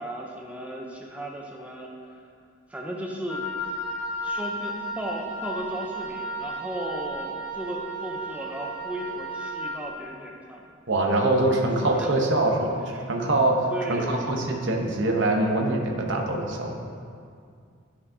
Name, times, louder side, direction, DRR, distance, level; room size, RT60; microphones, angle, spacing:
voice 1, 0.0-1.9 2.7-3.5 4.2-10.7 11.5-11.6 11.9-12.1 13.0-13.1 13.7-14.3, equal, 5° right, -1 dB, 0.5 m, -35 dB
Wind instrument woodwind instrument, 3.3-9.8, right 1 dB, 90° left, 1.7 m, -34 dB
voice 2, 10.9-12.8 13.1-16.7, right 2 dB, 60° right, 1 dB, 0.8 m, -24 dB
9.6 x 5.6 x 2.7 m, 2.2 s
head